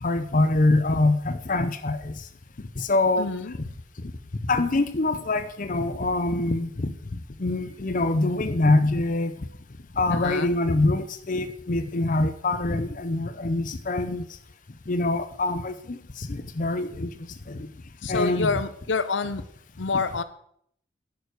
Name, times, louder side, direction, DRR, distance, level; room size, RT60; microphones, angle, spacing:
voice 1, 0.0-2.1 2.8-3.3 4.4-6.9 7.4-9.3 10.0-14.3 14.9-17.1 17.5-17.7 18.1-18.5, left 2 dB, 45° left, 10 dB, 0.7 m, -24 dB
voice 2, 3.2-3.5 10.1-10.5 18.0-19.4 19.8-20.2, left 4 dB, 80° left, 12 dB, 0.8 m, -27 dB
11.0 x 7.0 x 6.6 m, 0.67 s
head